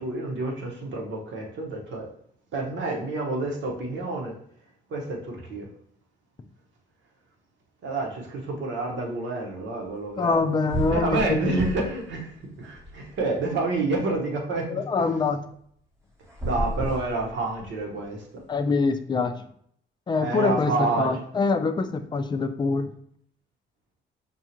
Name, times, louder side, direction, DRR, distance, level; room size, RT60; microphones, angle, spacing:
voice 1, 0.0-2.1 2.5-4.4 4.9-5.7 7.8-10.4 10.9-15.1 16.4-18.3 20.2-21.1, right 3 dB, 70° right, 0 dB, 1.1 m, -29 dB
voice 2, 10.2-11.5 14.9-15.4 18.5-19.3 20.1-22.9, left 4 dB, 25° left, 8 dB, 0.4 m, -24 dB
sound 1, 10.3-10.4 10.7-12.0 12.4-13.5 16.2-17.8, right 1 dB, 15° right, 0.9 m, -32 dB
5.3 x 2.4 x 2.9 m, 0.66 s
cardioid pair, 90°, 20 cm